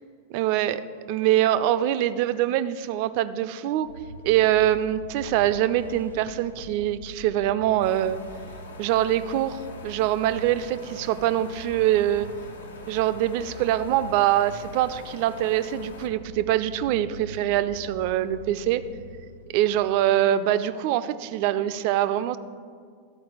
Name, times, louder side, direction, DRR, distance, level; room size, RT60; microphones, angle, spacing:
voice 1, 0.3-0.8 1.1-3.9 4.2-8.2 8.8-12.3 12.9-18.8 19.5-22.4, right 12 dB, 45° right, 13 dB, 0.3 m, -24 dB
Vehicle, 3.8-19.8, equal, 85° right, 0.7 m, -43 dB
sound 1, 7.8-16.1, left 3 dB, 65° left, 0.6 m, -45 dB
12.5 x 4.5 x 4.8 m, 2.1 s
figure-of-eight pair, 90°, 0 cm